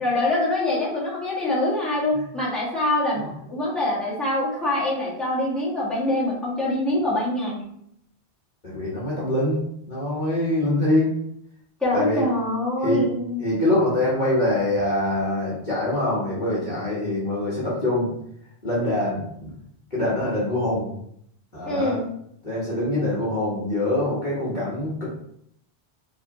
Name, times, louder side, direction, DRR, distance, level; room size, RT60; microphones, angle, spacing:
voice 1, 0.0-7.7 11.8-13.4 21.6-22.1, left 1 dB, ahead, -9 dB, 1.7 m, -24 dB
voice 2, 8.6-9.6 9.9-11.1 11.9-12.3 12.8-13.0 13.4-18.1 18.6-19.5 19.9-20.9 21.5-22.0 22.4-25.1, left 1 dB, 45° left, -8 dB, 1.3 m, -24 dB
4.7 x 3.3 x 2.9 m, 0.71 s
omnidirectional pair, 1.1 m